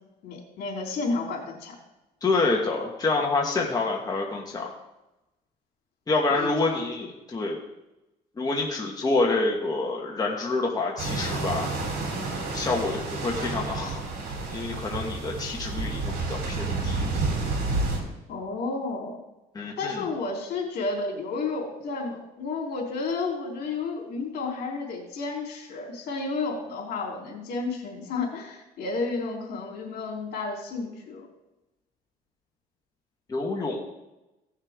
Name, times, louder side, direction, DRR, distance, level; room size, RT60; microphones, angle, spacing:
voice 1, 0.2-1.8 6.3-6.8 18.3-19.2 19.8-31.3, left 3 dB, 65° left, -2 dB, 3.6 m, -31 dB
voice 2, 2.2-4.7 6.1-7.6 8.4-11.7 12.5-14.0 14.5-17.2 19.5-20.0 33.3-33.8, left 3 dB, 20° left, -1 dB, 1.5 m, -27 dB
sound 1, 11.0-18.0, right 3 dB, 70° right, 3.2 m, -30 dB
16.5 x 6.5 x 3.7 m, 0.97 s
cardioid pair, 110°, 17 cm